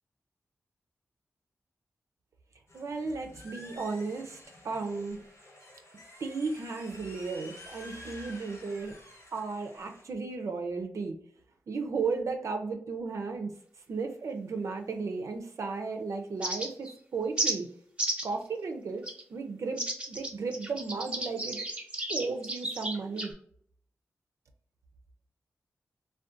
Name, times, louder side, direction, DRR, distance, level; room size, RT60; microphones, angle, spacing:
sound 1, 2.7-10.0, left 1 dB, 60° left, 1.2 m, -50 dB
voice 1, 2.7-4.4 4.6-5.2 6.2-9.0 9.3-11.1 11.7-13.5 13.9-17.7 18.2-21.6 22.1-23.3, right 4 dB, 65° right, 4 dB, 0.4 m, -34 dB
sound 2, 16.4-16.9 17.4-17.6 18.0-18.3 19.0-19.2 19.8-23.3, right 1 dB, 20° right, 0.8 m, -33 dB
2.4 x 2.1 x 2.5 m, 0.62 s
cardioid pair, 45°, 6 cm